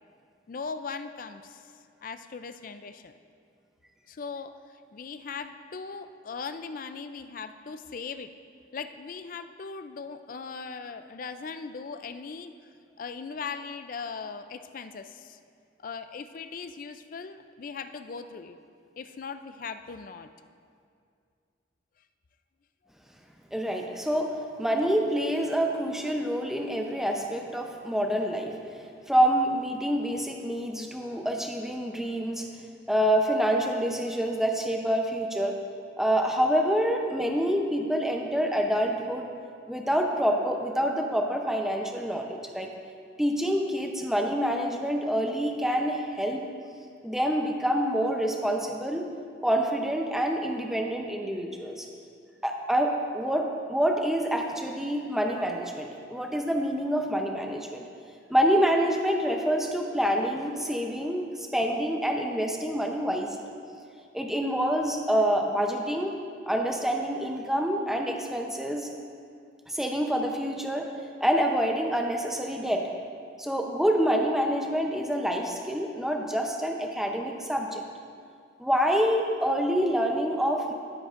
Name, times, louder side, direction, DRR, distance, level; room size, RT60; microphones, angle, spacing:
voice 1, 0.5-1.6 2.0-3.1 4.1-4.5 4.9-8.3 8.7-12.5 13.0-15.4 15.8-18.6 19.0-20.3, left 5 dB, 45° left, 10 dB, 0.4 m, -39 dB
voice 2, 23.5-24.3 24.6-28.6 29.1-32.5 32.9-35.5 36.0-39.3 39.7-42.7 43.2-46.4 47.0-49.0 49.4-51.9 52.4-57.9 58.3-63.4 64.1-66.1 66.5-68.9 69.7-70.9 71.2-72.8 73.4-77.8 78.6-80.7, equal, ahead, 2 dB, 0.6 m, -27 dB
16.5 x 7.8 x 2.5 m, 2.3 s
head